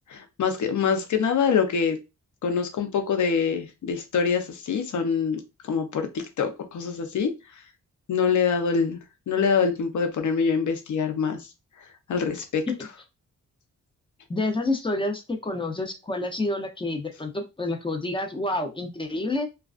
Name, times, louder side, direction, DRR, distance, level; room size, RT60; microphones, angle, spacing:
voice 1, 0.1-2.0 2.4-7.3 8.1-9.0 9.3-11.5 12.1-12.6, left 6 dB, 65° left, 6 dB, 0.6 m, -25 dB
voice 2, 14.3-19.5, left 2 dB, 15° left, 4 dB, 0.6 m, -28 dB
2.3 x 2.2 x 2.4 m, 0.26 s
cardioid pair, 75°, 31 cm